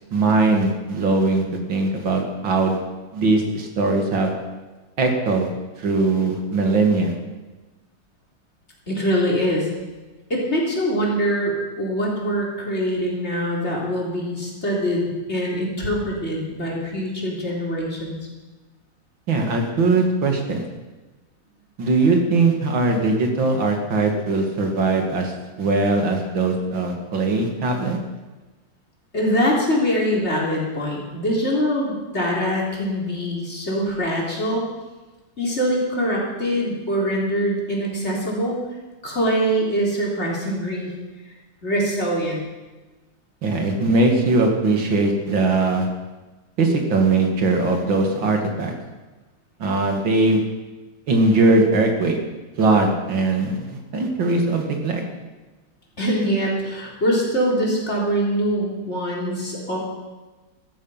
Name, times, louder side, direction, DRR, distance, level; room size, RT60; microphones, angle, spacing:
voice 1, 0.1-1.4 1.7-2.8 3.1-4.3 5.0-5.5 5.8-7.1 19.3-20.6 21.8-25.3 25.6-28.0 43.4-45.9 46.6-48.7 49.6-50.4 51.1-52.2 52.6-55.0, right 3 dB, 80° right, 3 dB, 2.9 m, -20 dB
voice 2, 8.9-9.7 10.3-18.2 29.1-34.6 35.4-38.6 39.0-40.9 41.6-42.4 56.0-59.8, equal, 35° left, -3 dB, 4.1 m, -23 dB
14.5 x 14.0 x 5.8 m, 1.2 s
omnidirectional pair, 2.1 m